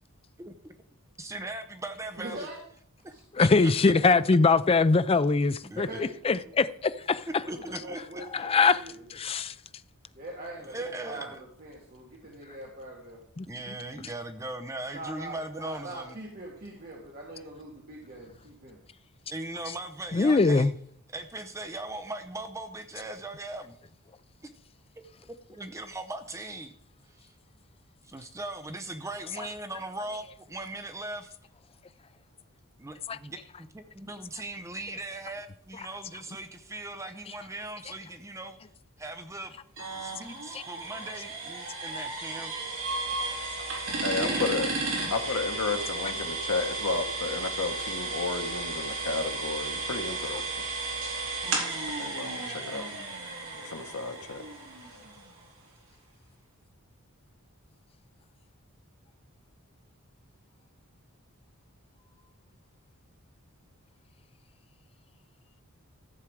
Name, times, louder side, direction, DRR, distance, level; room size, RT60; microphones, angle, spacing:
voice 1, 1.2-2.5 3.0-3.7 4.1-4.2 5.6-6.0 7.5-8.4 10.7-11.4 13.5-16.2 19.3-20.7 21.1-23.8 25.0-25.1 25.5-26.7 27.2-27.3 28.0-31.3 32.8-38.6 39.0-39.5 40.0-42.5 44.1-44.9, right 2 dB, 15° right, 0.7 m, -39 dB
voice 2, 2.2-2.6 3.1-3.2 5.7-6.5 7.4-9.1 10.1-13.2 14.9-18.8, right 1 dB, 40° right, 1.9 m, -42 dB
voice 3, 3.4-5.9 6.2-7.2 8.3-8.8 9.2-9.5 13.4-13.5 20.1-20.7 33.1-33.2 52.5-52.6, left 4 dB, 25° left, 0.4 m, -22 dB
sound 1, 39.8-55.4, right 3 dB, 65° right, 3.6 m, -34 dB
voice 4, 44.0-44.7 45.1-50.4 52.0-52.8 53.6-54.4, left 3 dB, 85° left, 1.2 m, -32 dB
14.0 x 7.3 x 4.7 m
head